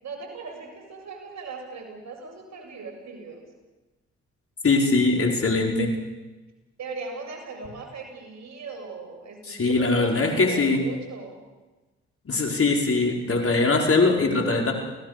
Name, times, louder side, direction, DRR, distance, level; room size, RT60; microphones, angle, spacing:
voice 1, 0.0-3.5 6.8-11.4, right 4 dB, 60° right, 2 dB, 7.6 m, -38 dB
voice 2, 4.6-5.9 9.5-10.8 12.3-14.7, left 3 dB, 45° left, 2 dB, 5.0 m, -21 dB
29.0 x 18.0 x 6.8 m, 1.2 s
hypercardioid pair, 45°, 31 cm